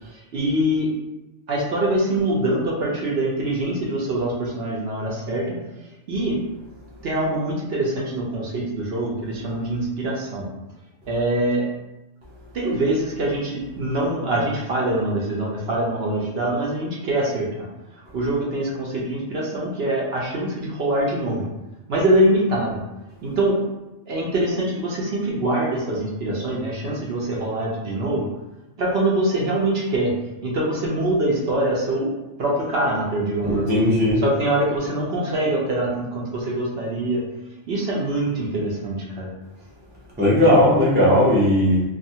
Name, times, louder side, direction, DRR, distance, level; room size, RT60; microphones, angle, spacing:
voice 1, 0.1-0.9 1.5-5.6 6.1-6.4 7.0-10.5 11.1-11.7 12.5-17.7 18.1-21.5 21.9-22.8 23.2-23.6 24.1-28.3 28.8-30.1 30.4-33.8 34.2-37.2 37.7-39.3, right 1 dB, 60° right, -4 dB, 0.8 m, -24 dB
voice 2, 33.4-34.2 40.2-41.8, left 1 dB, 15° right, -6 dB, 0.4 m, -17 dB
2.5 x 2.4 x 2.7 m, 0.98 s
omnidirectional pair, 1.3 m